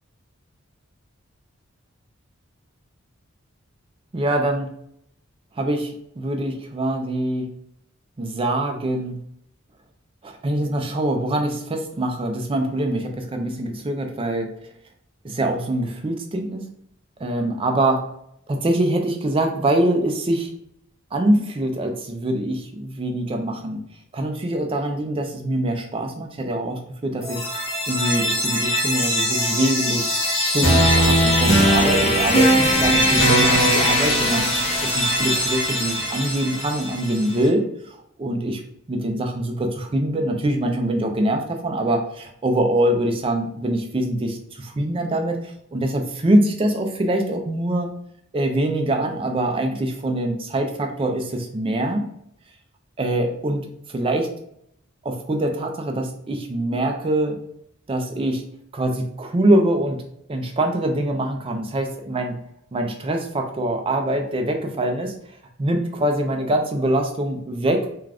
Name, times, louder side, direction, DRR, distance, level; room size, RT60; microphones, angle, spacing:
voice 1, 4.1-4.7 5.6-7.5 8.2-9.2 10.2-14.5 15.2-16.6 17.2-18.0 18.5-20.5 21.1-23.8 24.1-27.4 27.9-30.1 30.4-34.5 34.8-38.6 38.9-45.4 45.7-47.9 48.3-52.1 53.0-54.3 55.0-57.4 57.9-58.4 58.7-60.0 60.3-62.4 62.7-67.9, right 1 dB, 25° right, 4 dB, 0.4 m, -24 dB
sound 1, 27.2-37.1, equal, 30° left, 0.8 m, -20 dB
2.4 x 2.3 x 3.3 m, 0.70 s
head